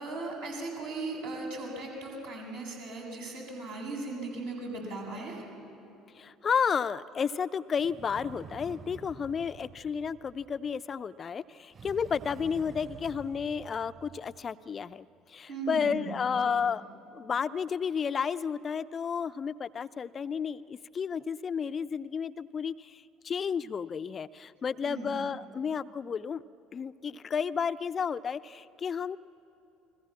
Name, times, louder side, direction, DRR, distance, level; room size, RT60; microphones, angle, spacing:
voice 1, 0.0-5.4 15.5-16.6 24.8-25.2, right 3 dB, 70° right, -4 dB, 7.6 m, -38 dB
voice 2, 6.1-16.8 17.1-26.4 26.7-29.2, left 6 dB, 35° left, 13 dB, 0.6 m, -32 dB
sound 1, 7.7-10.8 11.7-14.4, right 5 dB, 40° right, 3.9 m, -49 dB
29.5 x 21.0 x 7.3 m, 2.7 s
figure-of-eight pair, 60°, 0 cm